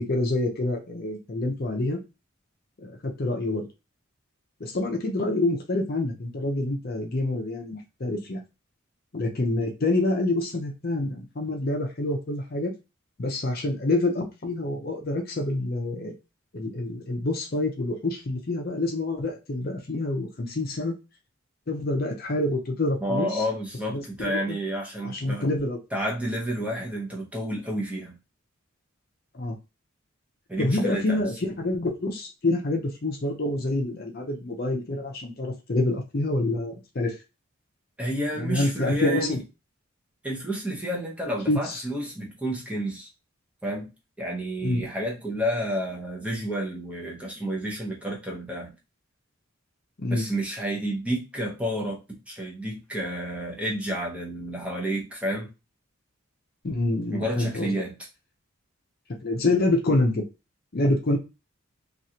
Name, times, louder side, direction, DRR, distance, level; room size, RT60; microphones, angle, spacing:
voice 1, 0.0-2.0 2.8-3.7 4.6-8.4 9.1-12.7 13.2-16.1 16.5-20.9 21.7-23.4 23.9-24.6 25.0-25.8 29.3-29.6 30.6-37.1 38.4-39.4 41.5-41.8 44.6-44.9 50.0-50.3 56.6-57.7 59.2-60.2 60.7-61.2, left 2 dB, 45° left, 3 dB, 0.6 m, -27 dB
voice 2, 23.0-25.5 25.9-28.2 30.5-31.2 38.0-39.4 40.2-43.1 43.6-48.7 50.1-55.5 57.1-58.0, right 1 dB, 5° right, -2 dB, 0.7 m, -30 dB
3.1 x 2.4 x 2.7 m, 0.27 s
head